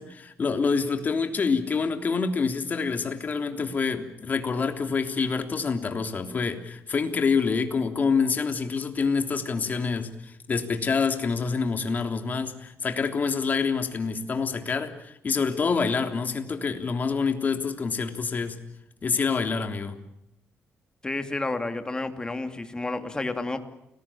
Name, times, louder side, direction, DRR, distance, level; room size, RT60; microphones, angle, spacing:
voice 1, 0.0-18.6 19.0-20.0, left 5 dB, 40° left, 6 dB, 3.3 m, -27 dB
voice 2, 21.0-23.6, left 2 dB, 20° left, 7 dB, 2.7 m, -30 dB
29.5 x 20.5 x 7.2 m, 0.83 s
cardioid pair, 105°, 4 cm